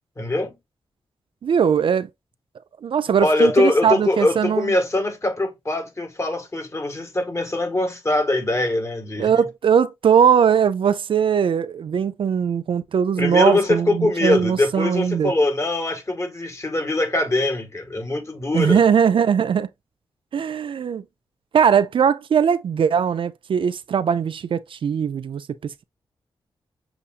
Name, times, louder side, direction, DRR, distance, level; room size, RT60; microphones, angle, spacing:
voice 1, 0.2-0.6 3.2-9.4 13.2-18.8, left 2 dB, 30° left, 1.6 m, -22 dB
voice 2, 1.4-2.1 2.8-4.7 9.2-15.3 18.5-19.7 20.3-21.0 21.5-25.8, right 7 dB, 65° right, 0.4 m, -20 dB
7.0 x 2.5 x 2.4 m
cardioid pair, 60°, 10 cm